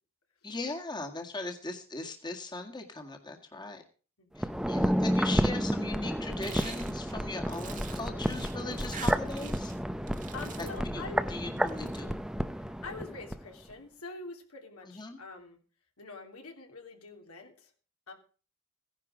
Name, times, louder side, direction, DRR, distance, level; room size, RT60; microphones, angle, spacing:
voice 1, 0.4-3.8 4.4-9.7 10.6-12.2 14.9-15.2, left 3 dB, 20° left, 3 dB, 1.9 m, -39 dB
voice 2, 4.2-4.6 10.1-11.3 12.5-15.6 16.0-17.7 18.1-18.2, left 3 dB, 80° left, 3 dB, 3.2 m, -45 dB
sound 1, 4.4-13.4 13.7-13.8, equal, 5° right, 0.8 m, -31 dB
sound 2, 6.4-9.8 10.1-10.9 11.6-12.0, right 7 dB, 35° right, 1.6 m, -46 dB
16.5 x 10.5 x 5.0 m, 0.38 s
head